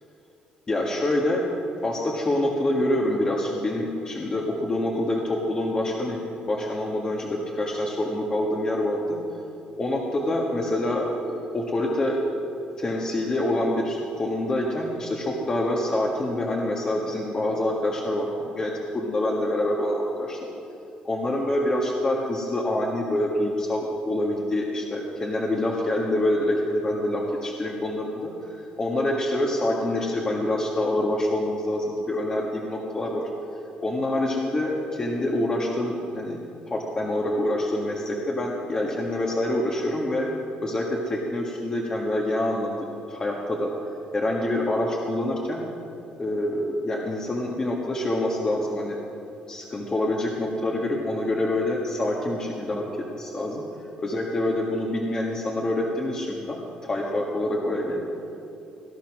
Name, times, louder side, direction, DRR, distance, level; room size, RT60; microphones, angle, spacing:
voice 1, 0.7-1.4 1.8-6.2 6.5-9.2 9.8-12.2 12.8-20.4 21.0-28.3 28.8-33.3 33.8-36.4 36.7-40.3 40.6-42.8 43.1-43.7 44.1-45.6 46.2-49.0 49.5-52.9 53.1-53.6 54.0-58.0, left 1 dB, 25° left, -1 dB, 1.7 m, -26 dB
18.5 x 11.5 x 6.2 m, 2.8 s
cardioid pair, 125°, 3 cm